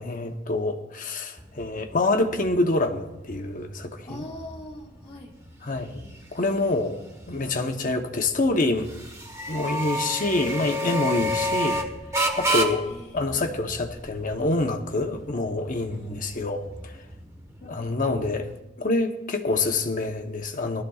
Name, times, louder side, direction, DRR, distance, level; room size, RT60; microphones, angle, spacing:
voice 1, 0.0-4.2 5.6-6.0 6.3-7.0 7.3-8.9 9.5-11.8 12.3-12.9 13.1-16.9 17.6-18.5 18.8-20.8, left 2 dB, 40° left, 5 dB, 0.9 m, -26 dB
sound 1, 1.4-18.6, equal, 15° right, 1.2 m, -32 dB
voice 2, 4.0-5.3 12.8-13.5 15.7-16.2, left 1 dB, 25° left, -6 dB, 1.4 m, -42 dB
19.5 x 13.0 x 2.4 m, 0.98 s
head